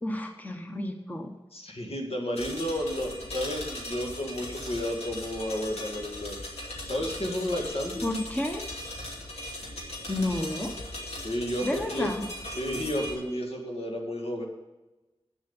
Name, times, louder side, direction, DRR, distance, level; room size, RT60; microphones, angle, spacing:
voice 1, 0.0-1.3 8.0-8.6 10.1-10.7 11.6-12.2, left 1 dB, 15° left, 3 dB, 1.0 m, -31 dB
voice 2, 1.5-6.4 6.9-8.1 11.2-12.1 12.6-14.5, equal, 70° left, 0 dB, 2.2 m, -32 dB
sound 1, 2.4-13.1, left 1 dB, 90° left, 2.6 m, -39 dB
9.0 x 7.4 x 7.2 m, 1.1 s
wide cardioid pair, 95°, 10 cm